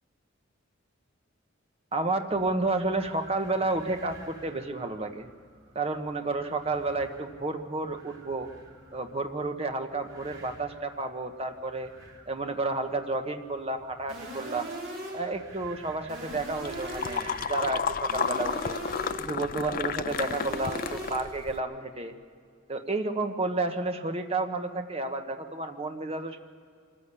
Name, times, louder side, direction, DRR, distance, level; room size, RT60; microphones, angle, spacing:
voice 1, 1.9-5.3 5.7-8.5 8.9-11.9 12.3-14.7 15.1-18.8 19.2-22.1 22.7-26.4, right 2 dB, 30° right, 6 dB, 1.2 m, -31 dB
sound 1, 2.3-17.8, right 3 dB, 85° right, 3.7 m, -52 dB
sound 2, 14.1-15.4 16.1-17.4 18.1-19.4 20.1-21.4, right 1 dB, 50° right, 5.2 m, -39 dB
sound 3, 16.3-21.6, left 6 dB, 45° left, 0.4 m, -32 dB
24.5 x 14.0 x 8.4 m, 2.2 s
head